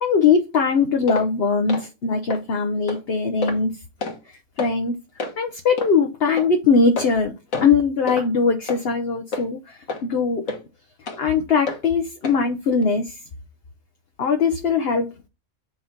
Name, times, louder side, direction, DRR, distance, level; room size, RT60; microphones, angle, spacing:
voice 1, 0.0-3.7 4.3-4.9 5.4-7.3 7.6-10.5 11.2-13.2 14.2-15.3, left 5 dB, 50° left, 1.0 m, -21 dB
sound 1, 1.1-1.3 1.7-1.9 2.3-2.4 2.9-3.0 3.4-3.6 4.0-4.2 4.6-4.7 5.2-5.3 5.8-5.9 6.4-6.5 7.0-7.2 7.5-7.7 8.1-8.3 8.7-8.8 9.3-9.4 9.9-10.0 10.5-10.6 11.1-11.2 11.7-11.8 12.2-12.4 12.8-12.9, left 3 dB, 70° left, 1.9 m, -29 dB
5.7 x 4.1 x 5.9 m
omnidirectional pair, 1.5 m